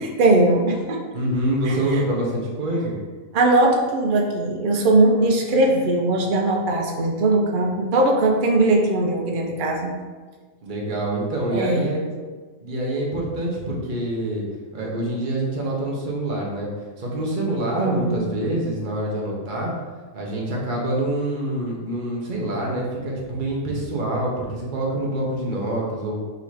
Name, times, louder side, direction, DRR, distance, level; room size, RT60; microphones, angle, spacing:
voice 1, 0.2-1.0 1.7-2.0 3.3-9.9 11.5-11.9 17.8-18.2, right 2 dB, 75° right, 0 dB, 0.4 m, -20 dB
voice 2, 1.1-3.0 10.6-12.0 12.6-14.4 14.7-16.7 17.0-19.7 20.1-26.2, right 1 dB, 40° right, -3 dB, 0.9 m, -26 dB
4.1 x 2.8 x 4.6 m, 1.4 s
omnidirectional pair, 1.6 m